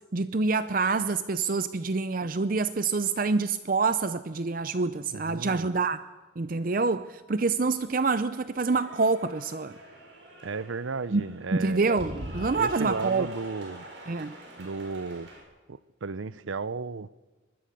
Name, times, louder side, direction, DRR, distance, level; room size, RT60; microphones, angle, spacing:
voice 1, 0.1-6.0 6.4-9.7 11.1-11.2 11.5-13.3 14.1-14.3, right 4 dB, 45° right, 0.6 m, -26 dB
voice 2, 5.1-5.6 10.4-11.9 12.6-13.8 14.6-15.3 15.7-17.1, right 4 dB, 85° right, 0.7 m, -34 dB
Cheering / Applause, 7.7-15.4, right 1 dB, 65° right, 7.4 m, -44 dB
23.5 x 20.5 x 6.7 m
head